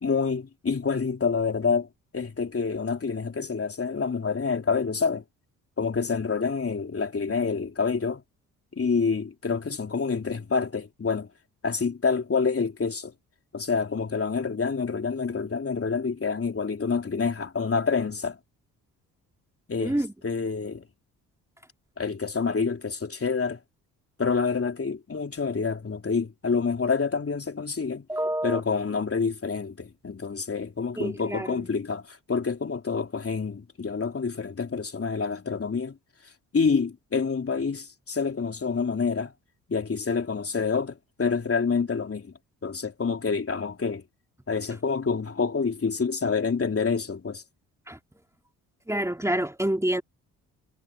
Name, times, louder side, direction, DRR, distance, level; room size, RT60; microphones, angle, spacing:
voice 1, 0.0-1.9 2.1-5.2 5.8-8.2 8.8-11.3 11.6-13.1 13.5-18.4 19.7-20.9 22.0-23.6 24.2-28.1 28.4-36.0 36.5-39.3 39.7-42.3 42.6-44.0 44.5-47.4, left 5 dB, 35° left, 3.5 m, -27 dB
voice 2, 19.8-20.1 28.1-28.6 31.0-31.7 47.9-48.0 48.9-50.0, right 1 dB, 5° right, 3.0 m, -27 dB
hypercardioid pair, 50°, 39 cm